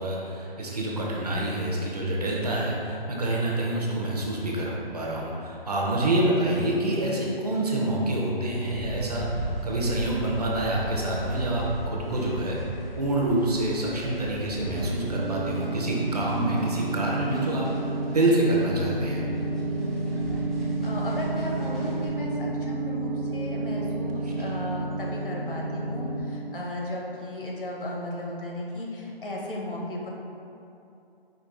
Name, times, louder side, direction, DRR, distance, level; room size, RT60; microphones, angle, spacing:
voice 1, 0.0-12.6 13.0-19.2 24.2-24.3, right 1 dB, 40° right, -3 dB, 0.6 m, -27 dB
sound 1, 8.7-22.1, right 1 dB, ahead, 0.3 m, -38 dB
sound 2, 14.5-26.2, right 2 dB, 70° right, 1.0 m, -30 dB
voice 2, 20.8-30.1, left 1 dB, 60° left, -2 dB, 0.9 m, -35 dB
5.1 x 2.6 x 3.7 m, 2.8 s
hypercardioid pair, 170°, 30 cm